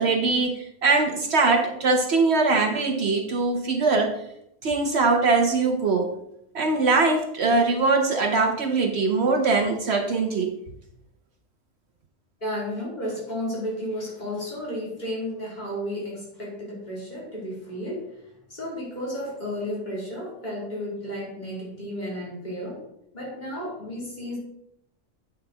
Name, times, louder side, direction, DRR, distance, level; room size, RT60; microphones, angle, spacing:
voice 1, 0.0-4.2 4.6-6.2 6.5-10.6, right 3 dB, 60° right, 5 dB, 0.9 m, -22 dB
voice 2, 12.4-22.8 23.1-24.4, equal, 35° left, -5 dB, 3.0 m, -33 dB
8.9 x 5.6 x 3.8 m, 0.77 s
omnidirectional pair, 1.3 m